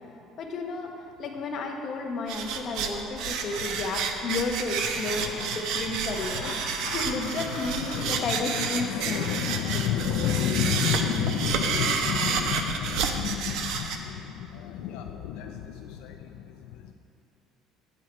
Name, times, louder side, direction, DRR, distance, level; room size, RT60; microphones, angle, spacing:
voice 1, 0.4-6.5 6.9-9.4, left 3 dB, 40° left, 2 dB, 0.9 m, -32 dB
sound 1, 2.3-14.0, right 6 dB, 65° right, 0.6 m, -30 dB
voice 2, 3.1-3.9 4.9-16.9, left 9 dB, 80° left, 4 dB, 0.4 m, -32 dB
9.1 x 6.4 x 4.3 m, 2.6 s
cardioid pair, 155°, 0 cm